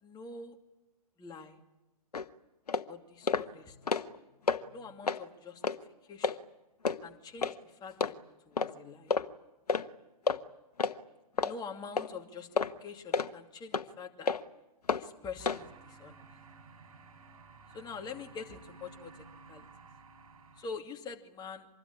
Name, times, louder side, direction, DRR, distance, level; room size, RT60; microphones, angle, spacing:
voice 1, 0.0-0.6 1.2-1.6 2.9-3.8 4.7-6.4 7.0-8.2 8.5-9.1 11.4-14.3 14.9-16.2 17.7-19.7 20.6-21.7, left 5 dB, 20° left, 4 dB, 2.5 m, -45 dB
sound 1, 2.1-2.3 2.7-2.9 3.3-3.5 3.8-4.2 4.5-4.6 5.0-5.2 5.6-5.8 6.2-6.4 6.9-7.0 7.4-7.6 8.0-8.1 8.6-8.7 9.1-9.3 9.7-9.9 10.3-10.4 10.8-11.0 11.4-11.6 12.0-12.1 12.6-12.7 13.1-13.3 13.7-13.9 14.3-14.4 14.9-15.0 15.5-15.6, left 5 dB, 80° left, 1.2 m, -29 dB
sound 2, 15.4-20.7, right 4 dB, 65° right, 7.4 m, -54 dB
25.5 x 20.5 x 10.0 m, 1.0 s
figure-of-eight pair, 115°, 20 cm